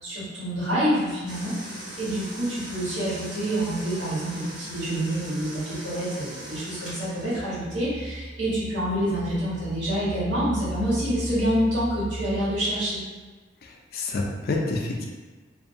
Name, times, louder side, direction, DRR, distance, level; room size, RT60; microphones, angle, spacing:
voice 1, 0.0-13.0, equal, 85° right, -11 dB, 1.5 m, -27 dB
sound 1, 1.3-7.5, right 1 dB, 55° right, 1.1 m, -40 dB
voice 2, 13.6-15.1, left 2 dB, 55° left, 0 dB, 0.4 m, -28 dB
2.5 x 2.2 x 2.7 m, 1.3 s
head